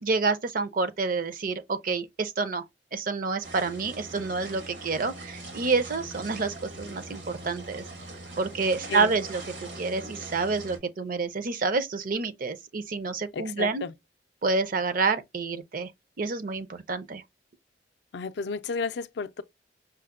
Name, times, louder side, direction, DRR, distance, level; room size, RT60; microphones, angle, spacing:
voice 1, 0.0-2.7 2.9-7.9 8.4-13.8 14.4-15.9 16.2-17.2, right 4 dB, 50° right, 0.5 m, -28 dB
sound 1, 3.4-10.8, right 2 dB, 90° right, 1.9 m, -42 dB
voice 2, 13.3-13.9 18.1-19.4, left 5 dB, 70° left, 0.4 m, -32 dB
5.5 x 2.0 x 2.4 m
head